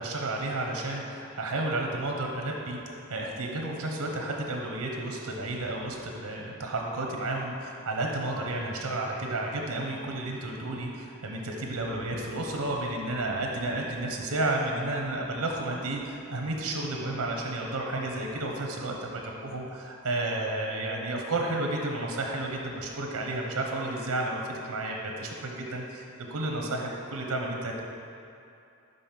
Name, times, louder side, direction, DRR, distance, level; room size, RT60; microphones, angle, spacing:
voice 1, 0.0-27.8, right 2 dB, 85° right, 1 dB, 0.8 m, -32 dB
5.5 x 5.1 x 5.8 m, 2.6 s
head